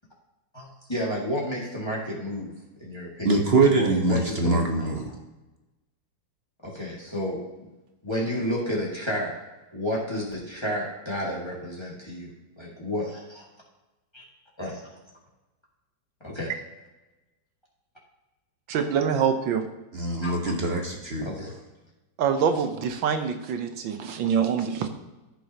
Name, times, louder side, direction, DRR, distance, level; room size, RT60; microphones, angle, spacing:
voice 1, 0.5-2.5 2.8-3.4 3.7-4.9 6.6-7.4 8.0-9.3 9.7-12.3 12.6-13.5 14.1-14.2 14.6-14.9 16.2-16.5 20.2-20.3 21.2-21.5, equal, 15° left, -4 dB, 2.0 m, -31 dB
voice 2, 3.2-5.1 19.9-21.3, right 3 dB, 40° right, 2 dB, 1.1 m, -23 dB
voice 3, 18.7-19.6 22.2-24.9, right 7 dB, 85° right, 7 dB, 1.7 m, -25 dB
14.5 x 6.1 x 2.9 m, 1.1 s
omnidirectional pair, 2.0 m